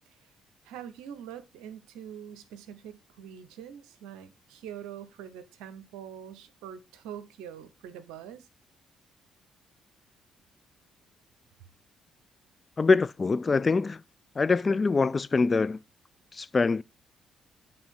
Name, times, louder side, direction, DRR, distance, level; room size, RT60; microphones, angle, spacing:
voice 1, 0.6-8.5, right 9 dB, 80° right, 0.7 m, -44 dB
voice 2, 12.8-14.0 14.4-15.8 16.3-16.8, left 4 dB, 35° left, 0.3 m, -24 dB
8.9 x 3.4 x 3.4 m
hypercardioid pair, 50°, 0 cm